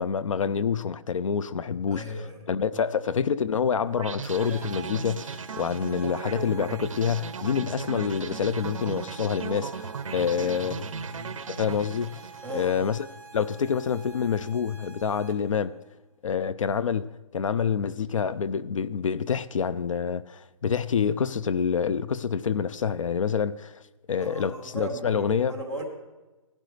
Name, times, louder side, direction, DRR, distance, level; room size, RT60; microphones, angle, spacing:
voice 1, 0.0-10.9 11.5-12.2 12.5-13.1 13.3-15.7 16.2-23.8 24.1-25.6, left 7 dB, 70° left, 0.5 m, -27 dB
voice 2, 1.9-2.4 10.1-11.4 12.4-12.8 24.2-25.8, right 1 dB, 5° left, 1.0 m, -37 dB
sound 1, 4.0-13.0, right 6 dB, 70° right, 0.7 m, -37 dB
sound 2, 4.2-15.6, right 5 dB, 30° right, 1.3 m, -48 dB
16.5 x 11.5 x 3.3 m
hypercardioid pair, 180°, 17 cm